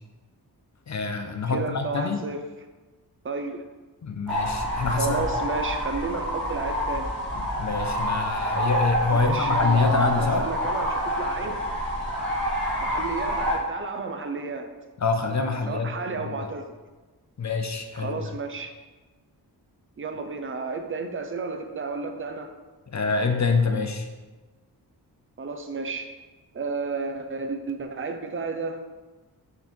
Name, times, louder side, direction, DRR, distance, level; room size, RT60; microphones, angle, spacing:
voice 1, 0.9-2.2 4.0-5.2 7.3-10.4 15.0-16.4 17.4-18.3 22.9-24.1, left 4 dB, 45° left, 5 dB, 0.6 m, -26 dB
voice 2, 1.5-2.4 3.2-3.6 4.9-7.1 9.1-11.6 12.8-14.7 15.7-16.7 18.0-18.7 20.0-22.5 25.4-26.1 26.5-28.8, right 4 dB, 30° right, 6 dB, 0.6 m, -32 dB
sound 1, 4.3-13.6, equal, ahead, 2.3 m, -27 dB
8.6 x 3.9 x 4.4 m, 1.3 s
wide cardioid pair, 175°, 40 cm